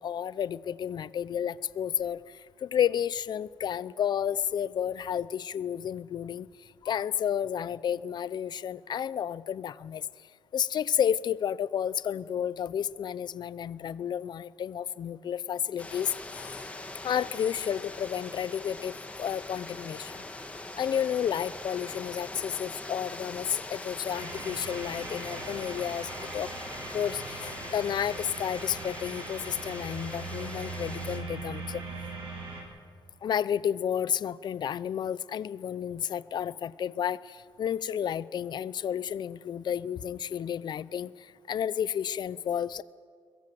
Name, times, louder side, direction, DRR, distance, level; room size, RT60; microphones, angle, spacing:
voice 1, 0.0-10.1 10.5-16.7 17.0-20.2 20.7-26.5 26.9-31.8 33.2-42.8, left 9 dB, 50° left, 18 dB, 0.5 m, -31 dB
sound 1, 15.8-31.2, left 2 dB, 15° left, 2.3 m, -42 dB
sound 2, 24.1-32.6, right 3 dB, 60° right, 7.8 m, -40 dB
22.0 x 22.0 x 7.7 m, 2.1 s
cardioid pair, 145°, 10 cm